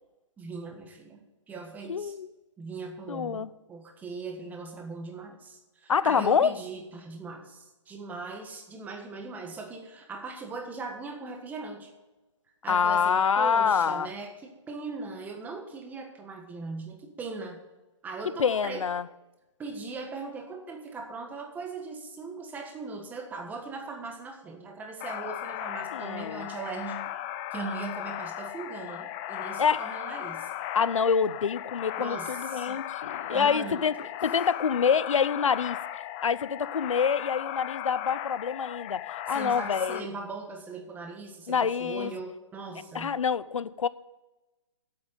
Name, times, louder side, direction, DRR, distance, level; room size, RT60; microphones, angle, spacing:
voice 1, 0.4-1.2 1.5-2.2 2.6-11.9 12.6-17.6 18.0-18.9 19.6-27.0 27.5-30.5 32.0-32.8 33.3-34.1 39.3-43.2, right 4 dB, 10° right, 1.5 m, -39 dB
voice 2, 1.9-2.3 3.1-3.5 5.9-6.6 12.7-14.1 18.4-19.0 25.9-26.5 29.6-29.9 30.7-35.8 36.2-40.1 41.5-42.1 42.9-43.9, left 6 dB, 85° left, 0.6 m, -26 dB
sound 1, 25.0-40.0, left 12 dB, 25° left, 0.5 m, -37 dB
8.8 x 7.4 x 8.8 m
hypercardioid pair, 150°, 16 cm